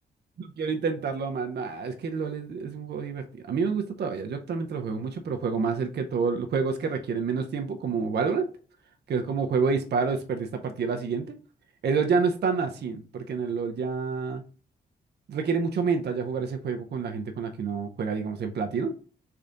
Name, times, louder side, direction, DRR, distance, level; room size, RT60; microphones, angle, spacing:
voice 1, 0.6-8.5 9.1-11.3 11.8-14.4 15.3-18.9, right 5 dB, 60° right, 5 dB, 0.5 m, -28 dB
3.3 x 2.5 x 3.8 m, 0.40 s
cardioid pair, 60°, 19 cm